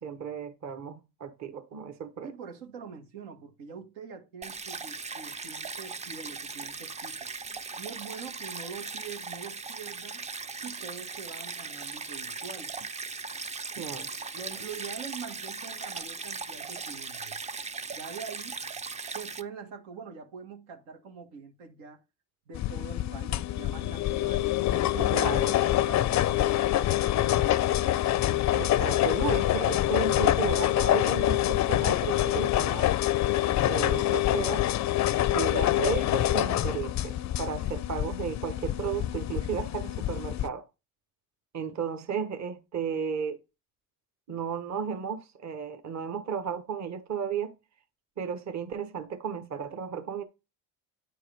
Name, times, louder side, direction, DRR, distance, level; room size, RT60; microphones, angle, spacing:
voice 1, 0.0-2.3 13.8-14.1 25.1-25.5 28.5-33.0 33.7-34.7 35.3-40.6 41.5-43.4 44.3-47.5 48.2-50.2, right 7 dB, 35° right, 1.2 m, -34 dB
voice 2, 2.2-7.3 7.8-10.2 10.6-12.7 13.7-17.4 17.9-18.6 19.1-22.0 22.5-24.5 24.9-27.6, right 6 dB, 75° right, 1.6 m, -44 dB
Stream, 4.4-19.4, right 4 dB, 15° right, 0.4 m, -38 dB
sound 1, 22.5-40.5, left 13 dB, 40° left, 0.5 m, -26 dB
9.2 x 4.7 x 3.4 m
supercardioid pair, 75°, 47 cm